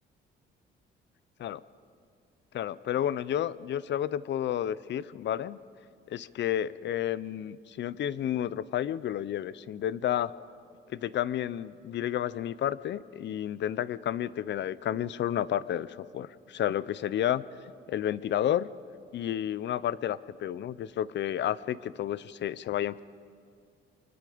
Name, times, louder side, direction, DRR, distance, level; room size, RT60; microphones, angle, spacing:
voice 1, 2.5-5.6 6.1-10.3 10.9-17.4 17.9-18.7 19.1-23.0, left 11 dB, 65° left, 18 dB, 0.7 m, -31 dB
29.5 x 24.5 x 5.1 m, 2.2 s
cardioid pair, 90°, 20 cm